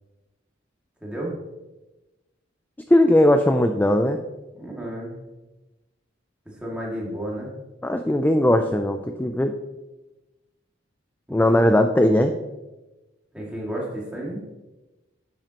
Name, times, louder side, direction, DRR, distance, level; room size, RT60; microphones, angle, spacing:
voice 1, 1.0-1.3 4.6-5.1 6.6-7.5 11.5-11.6 13.3-14.4, right 1 dB, 5° right, -4 dB, 2.2 m, -31 dB
voice 2, 2.9-4.2 7.8-9.5 11.3-12.3, left 1 dB, 10° left, 6 dB, 0.3 m, -19 dB
10.0 x 7.5 x 2.9 m, 1.1 s
head